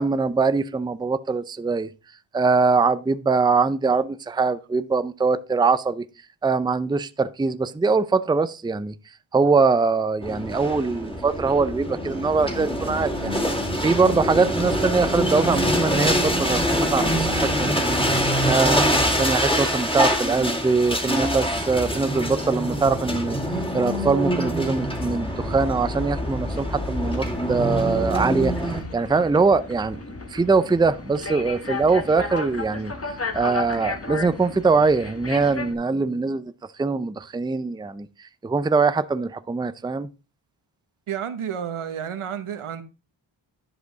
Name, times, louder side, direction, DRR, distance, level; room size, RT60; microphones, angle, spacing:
voice 1, 0.0-1.9 2.3-6.0 6.4-8.9 9.3-17.7 18.4-23.4 23.7-30.0 30.3-36.5 36.8-40.1, right 4 dB, 10° right, 0.5 m, -22 dB
sound 1, 10.2-28.8, equal, 10° left, 2.2 m, -25 dB
sound 2, 24.8-35.7, left 3 dB, 30° left, 1.3 m, -35 dB
voice 2, 41.1-42.8, right 8 dB, 80° right, 1.1 m, -30 dB
11.0 x 5.1 x 3.8 m
cardioid pair, 65°, 49 cm